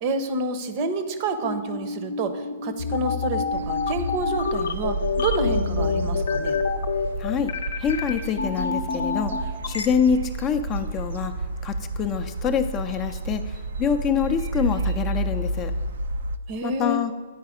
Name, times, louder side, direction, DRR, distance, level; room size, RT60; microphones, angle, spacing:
voice 1, 0.0-6.6 16.5-17.0, right 2 dB, 40° right, 10 dB, 0.7 m, -28 dB
sound 1, 1.4-9.9, left 5 dB, 70° left, 0.6 m, -27 dB
sound 2, 3.5-16.4, right 2 dB, 65° right, 0.4 m, -30 dB
voice 2, 7.2-7.5 7.8-11.3 11.6-15.7 16.6-17.1, left 7 dB, 25° left, 9 dB, 0.4 m, -26 dB
9.3 x 4.7 x 5.0 m, 1.5 s
figure-of-eight pair, 120°, 0 cm